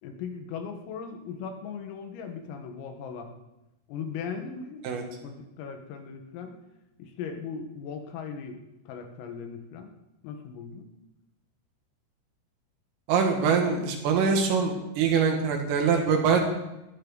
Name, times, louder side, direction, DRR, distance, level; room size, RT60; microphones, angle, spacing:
voice 1, 0.0-3.3 3.9-4.9 5.2-6.6 7.0-8.6 8.9-9.9 10.2-10.9, left 6 dB, 80° left, 4 dB, 4.3 m, -38 dB
voice 2, 13.1-16.4, right 6 dB, 75° right, 2 dB, 4.6 m, -23 dB
20.0 x 14.5 x 4.1 m, 0.94 s
omnidirectional pair, 5.9 m